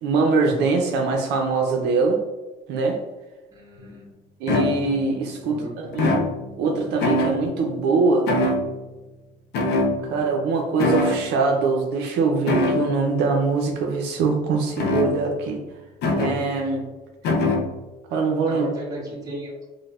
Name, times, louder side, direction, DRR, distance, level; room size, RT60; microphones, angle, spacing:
voice 1, 0.0-2.2 2.7-3.0 4.4-8.3 10.0-15.6 16.2-16.9 18.1-18.7, right 4 dB, 80° right, 2 dB, 0.5 m, -23 dB
voice 2, 3.5-4.1 5.4-5.9 18.5-19.6, equal, 20° right, -4 dB, 1.2 m, -35 dB
sound 1, 3.8-3.9 4.5-5.2 5.9-6.7 7.0-7.7 8.3-9.0 9.5-10.4 10.8-11.3 12.5-13.1 14.8-15.5 16.0-16.5 17.2-17.8, left 2 dB, 80° left, 0.5 m, -23 dB
4.5 x 2.1 x 2.3 m, 1.1 s
cardioid pair, 110°, 17 cm